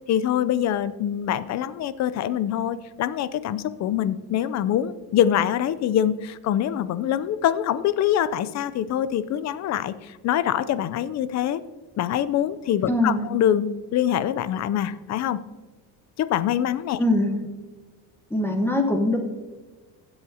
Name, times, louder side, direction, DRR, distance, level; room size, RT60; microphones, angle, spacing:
voice 1, 0.1-11.6 12.0-15.4 16.2-17.0, left 10 dB, 45° left, 15 dB, 0.5 m, -24 dB
voice 2, 12.9-13.3 17.0-17.4 18.3-19.2, left 1 dB, 5° left, 3 dB, 1.0 m, -22 dB
16.0 x 7.9 x 2.8 m, 1.3 s
cardioid pair, 130°, 37 cm